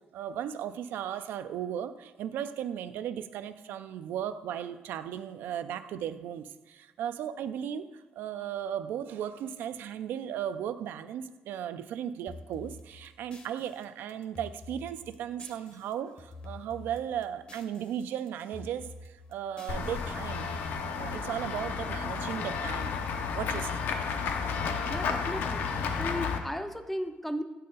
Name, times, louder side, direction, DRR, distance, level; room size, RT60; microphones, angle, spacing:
voice 1, 0.1-20.5 20.9-23.0 23.3-23.8, right 9 dB, 85° right, 11 dB, 0.3 m, -36 dB
sound 1, 12.3-18.0 18.3-20.6, left 2 dB, 35° left, 0.7 m, -48 dB
Run / Walk footsteps / Bell, 19.7-26.4, left 5 dB, 75° left, 0.6 m, -32 dB
voice 2, 24.9-27.4, equal, 5° left, 8 dB, 0.3 m, -35 dB
8.5 x 4.1 x 3.8 m, 1.1 s
cardioid pair, 160°, 3 cm